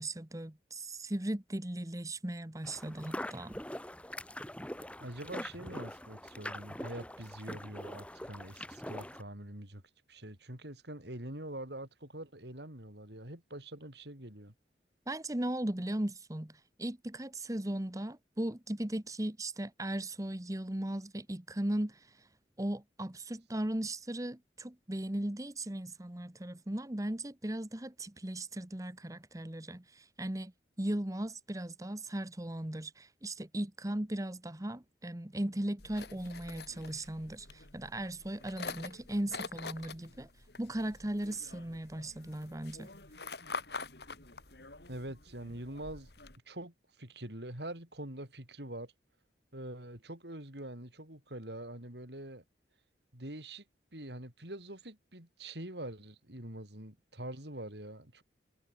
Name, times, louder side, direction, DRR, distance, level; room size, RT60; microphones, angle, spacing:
voice 1, 0.0-3.6 15.1-22.3 22.6-30.5 30.8-40.3 40.6-42.9, right 1 dB, 20° right, 1.1 m, -37 dB
sound 1, 2.6-9.2, left 1 dB, 5° left, 4.9 m, -43 dB
voice 2, 5.0-9.8 10.1-14.5 44.9-46.1 46.5-48.9 49.5-52.4 53.1-53.6 53.9-58.2, right 1 dB, 70° right, 5.3 m, -44 dB
sound 2, 35.8-46.4, left 4 dB, 65° left, 4.7 m, -46 dB
head